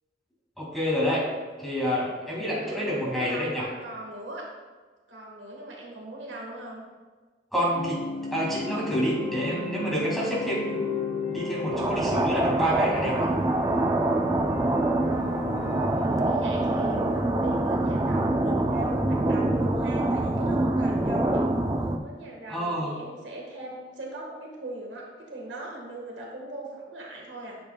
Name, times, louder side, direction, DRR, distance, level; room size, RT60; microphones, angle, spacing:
voice 1, 0.6-1.3 1.6-3.7 7.5-8.0 8.3-10.8 11.3-13.3 22.5-22.9, equal, ahead, -6 dB, 2.0 m, -28 dB
voice 2, 2.5-4.4 5.1-6.8 15.1-15.6 15.9-21.4 22.0-27.6, right 1 dB, 75° right, -1 dB, 1.4 m, -39 dB
sound 1, 7.7-22.5, left 1 dB, 60° left, 0.5 m, -40 dB
sound 2, 8.4-20.1, left 2 dB, 35° left, 1.3 m, -37 dB
sound 3, 11.7-22.0, right 2 dB, 20° right, 0.4 m, -25 dB
8.4 x 6.7 x 2.2 m, 1.4 s
head